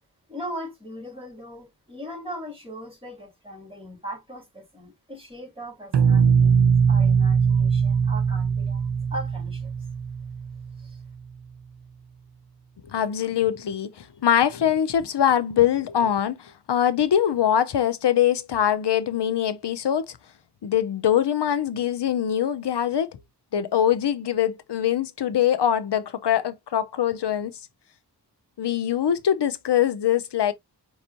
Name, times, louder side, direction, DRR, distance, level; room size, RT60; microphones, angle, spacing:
voice 1, 0.3-9.7 10.8-11.0, equal, 15° right, 3.4 m, -39 dB
sound 1, 5.9-10.8, right 6 dB, 90° right, 0.8 m, -21 dB
voice 2, 12.8-20.2 20.6-23.1 23.5-27.6 28.6-30.5, left 10 dB, 80° left, 0.7 m, -23 dB
5.3 x 3.0 x 2.6 m
wide cardioid pair, 50°, 40 cm